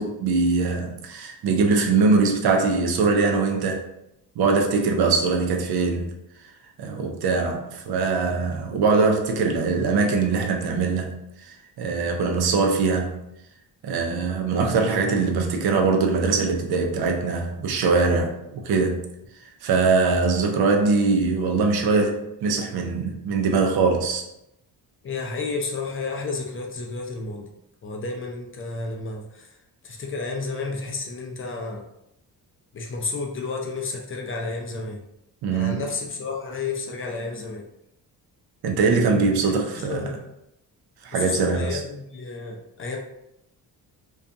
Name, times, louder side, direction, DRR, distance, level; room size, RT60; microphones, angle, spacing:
voice 1, 0.0-3.8 4.4-6.1 6.8-13.2 13.8-19.1 19.6-24.2 35.4-35.8 38.6-40.2 41.0-41.8, right 4 dB, 70° right, 3 dB, 0.6 m, -22 dB
voice 2, 25.0-27.5 27.8-29.6 29.8-31.8 32.7-35.0 35.5-37.7 39.4-40.2 41.1-43.0, left 3 dB, 35° left, 1 dB, 0.5 m, -31 dB
2.5 x 2.3 x 2.6 m, 0.83 s
cardioid pair, 95°, 39 cm